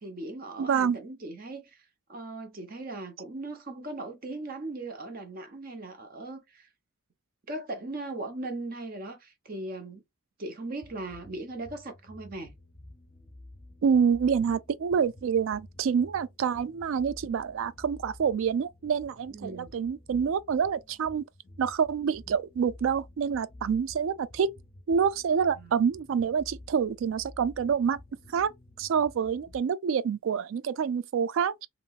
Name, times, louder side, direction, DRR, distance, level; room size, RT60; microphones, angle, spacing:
voice 1, 0.0-1.8 2.1-6.7 7.5-10.0 10.4-12.5 19.3-19.8 25.5-25.8, right 2 dB, 45° right, 0.8 m, -38 dB
voice 2, 0.6-1.0 13.8-21.3 21.6-24.5 24.9-28.0 28.3-28.5 28.8-31.7, right 7 dB, 70° right, 0.3 m, -27 dB
sound 1, 10.8-29.6, left 1 dB, 30° left, 0.7 m, -51 dB
3.0 x 2.8 x 2.3 m
head